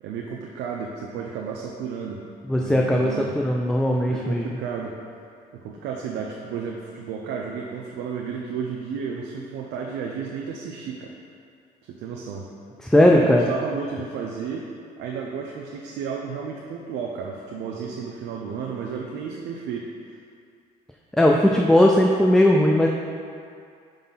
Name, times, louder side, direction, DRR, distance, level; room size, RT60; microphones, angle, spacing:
voice 1, 0.0-2.2 2.5-3.3 4.0-4.9 5.5-11.1 11.9-12.5 12.9-14.7 15.0-19.9, right 6 dB, 80° right, -1 dB, 0.6 m, -32 dB
voice 2, 2.5-4.5 12.8-13.5 21.1-22.9, left 1 dB, 5° left, 0 dB, 0.4 m, -18 dB
5.0 x 3.9 x 5.6 m, 2.3 s
cardioid pair, 110°, 17 cm